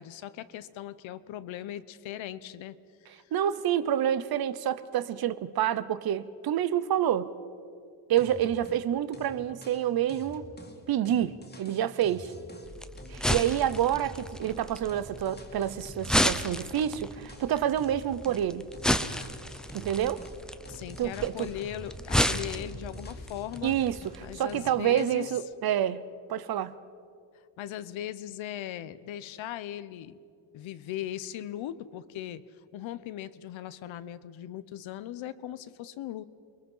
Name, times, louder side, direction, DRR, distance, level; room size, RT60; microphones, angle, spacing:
voice 1, 0.0-2.8 3.1-3.3 20.7-23.8 24.2-25.3 27.6-30.2 30.5-32.4 32.7-36.3, left 12 dB, 80° left, 1.0 m, -39 dB
voice 2, 3.3-7.3 8.1-10.5 10.9-12.3 13.1-18.7 19.7-20.2 21.0-21.5 23.6-26.8, right 10 dB, 50° right, 0.8 m, -28 dB
sound 1, 8.2-8.8 9.1-14.6 14.9-16.5 16.8-18.5 18.7-22.3 22.6-24.2 24.5-25.2, equal, 20° left, 2.2 m, -48 dB
sound 2, 12.6-24.4, equal, ahead, 0.6 m, -33 dB
29.5 x 22.5 x 5.6 m
cardioid pair, 170°, 47 cm